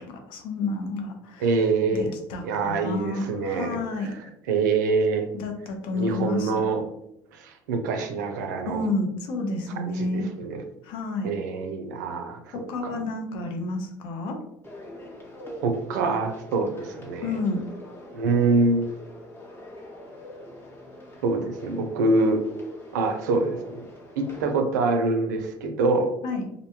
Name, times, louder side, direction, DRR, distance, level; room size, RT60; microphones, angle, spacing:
voice 1, 0.0-1.5 1.9-4.1 5.3-6.6 8.6-10.3 10.8-11.3 12.5-14.4 17.2-17.6 26.2-26.4, left 2 dB, 70° left, 3 dB, 0.6 m, -30 dB
voice 2, 1.4-2.1 2.4-4.2 4.5-5.3 5.9-6.8 7.3-8.8 9.9-10.6 11.2-13.0 15.6-17.3 18.1-18.9 21.2-22.4 22.9-23.8 24.2-26.1, right 3 dB, 85° right, 5 dB, 0.4 m, -25 dB
sound 1, 14.6-24.5, left 1 dB, 25° left, 0.8 m, -44 dB
2.6 x 2.1 x 2.8 m, 0.79 s
hypercardioid pair, 75°, 9 cm